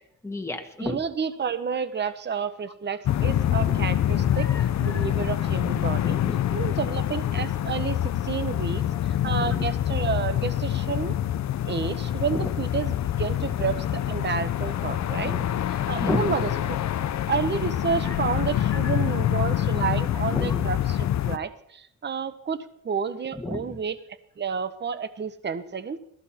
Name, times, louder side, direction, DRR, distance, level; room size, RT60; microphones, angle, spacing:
voice 1, 0.2-1.0 3.7-3.9 4.3-5.2 6.2-6.4 9.2-9.6 12.3-12.5 15.2-15.5 16.0-16.3 18.0-18.2 18.7-19.1 20.2-20.7 23.4-23.8, left 2 dB, 10° left, 3 dB, 1.7 m, -33 dB
voice 2, 0.8-4.5 4.8-6.2 6.5-8.8 9.2-11.2 11.6-15.3 15.9-16.8 17.3-24.0 24.4-26.0, right 6 dB, 30° right, 11 dB, 1.0 m, -30 dB
sound 1, 3.1-21.4, left 11 dB, 55° left, 0.6 m, -26 dB
18.0 x 14.5 x 4.3 m, 0.71 s
wide cardioid pair, 155°, 33 cm